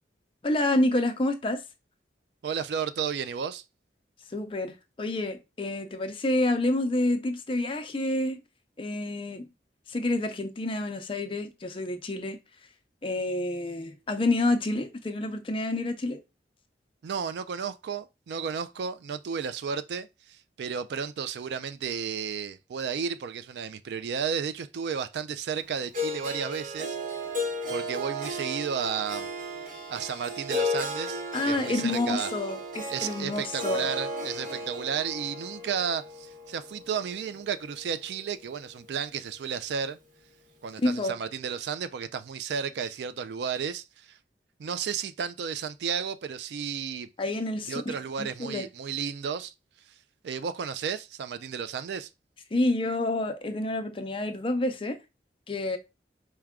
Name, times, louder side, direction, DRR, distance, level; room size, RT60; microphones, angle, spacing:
voice 1, 0.4-1.6 4.3-8.4 8.8-9.5 9.9-12.4 13.0-16.2 31.3-33.9 40.8-41.2 47.2-48.7 52.5-55.0 55.5-55.8, left 2 dB, 30° left, 0.5 m, -28 dB
voice 2, 2.4-3.6 17.0-27.0 27.7-29.3 29.9-32.3 32.9-40.0 40.6-44.2 44.6-47.1 47.7-49.5 50.2-52.1, right 7 dB, 65° right, 0.3 m, -33 dB
Harp, 25.9-38.1, left 1 dB, 50° right, 1.0 m, -34 dB
4.6 x 2.2 x 3.6 m
head